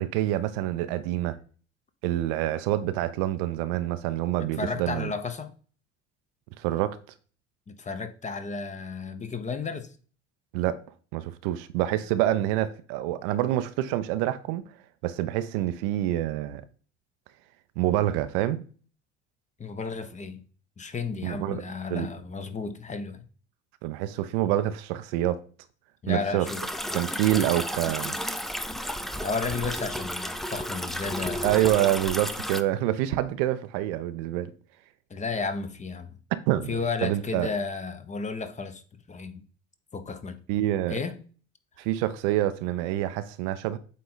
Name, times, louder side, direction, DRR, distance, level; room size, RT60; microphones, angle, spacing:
voice 1, 0.0-1.4 2.0-5.1 6.6-7.0 10.5-10.9 11.1-14.6 15.0-16.6 17.8-18.6 21.2-21.6 21.9-22.1 23.8-25.4 26.1-26.5 26.9-28.1 31.4-34.5 36.5-37.5 40.5-41.0 41.8-43.8, right 13 dB, 55° right, 0.6 m, -27 dB
voice 2, 4.6-5.5 7.7-9.9 19.6-20.4 20.8-23.3 26.0-26.6 29.2-31.5 35.1-36.1 36.7-38.8 39.1-39.4 39.9-40.4 40.9-41.2, left 4 dB, 20° left, 0.9 m, -33 dB
sound 1, 26.4-32.6, equal, ahead, 0.3 m, -33 dB
8.3 x 3.8 x 4.0 m
figure-of-eight pair, 60°, 35 cm